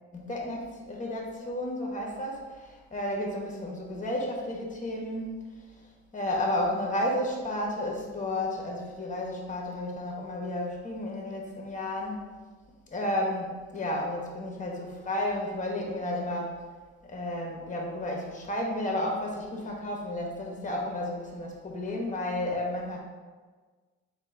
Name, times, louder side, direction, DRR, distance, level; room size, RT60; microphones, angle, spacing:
voice 1, 0.1-5.4 6.1-12.2 12.9-16.5 17.1-23.0, left 1 dB, 25° left, -1 dB, 1.0 m, -32 dB
3.7 x 2.8 x 4.4 m, 1.4 s
cardioid pair, 90°, 30 cm